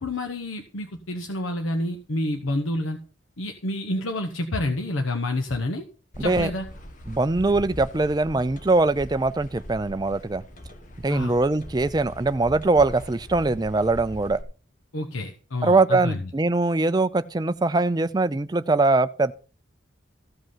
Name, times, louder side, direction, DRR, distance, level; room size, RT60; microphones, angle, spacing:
voice 1, 0.0-3.0 3.4-5.8 6.2-6.7 11.1-11.4 14.9-16.3, left 1 dB, 90° left, 1.0 m, -28 dB
sound 1, 6.1-14.4, equal, 40° left, 1.3 m, -41 dB
voice 2, 6.2-6.5 7.1-10.4 11.0-14.4 15.6-19.3, right 3 dB, 20° right, 0.4 m, -22 dB
14.5 x 5.4 x 5.6 m
head